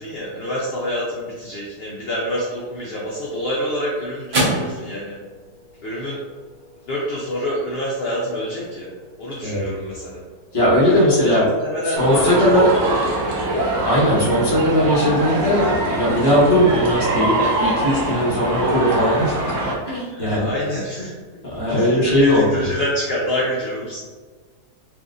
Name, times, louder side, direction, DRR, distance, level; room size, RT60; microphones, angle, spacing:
voice 1, 0.0-5.2 5.8-6.2 6.8-8.9 9.2-10.2 10.9-13.3 20.1-21.1 21.7-24.0, left 1 dB, 75° left, -5 dB, 0.5 m, -26 dB
sound 1, 3.0-11.6, right 1 dB, 45° right, 1.2 m, -32 dB
voice 2, 10.5-11.4 11.8-12.7 13.8-19.3 19.8-20.5 21.4-22.7, equal, 20° left, -7 dB, 0.7 m, -18 dB
sound 2, 11.9-19.7, right 1 dB, 65° right, 0.9 m, -23 dB
3.3 x 2.6 x 2.5 m, 1.4 s
omnidirectional pair, 1.7 m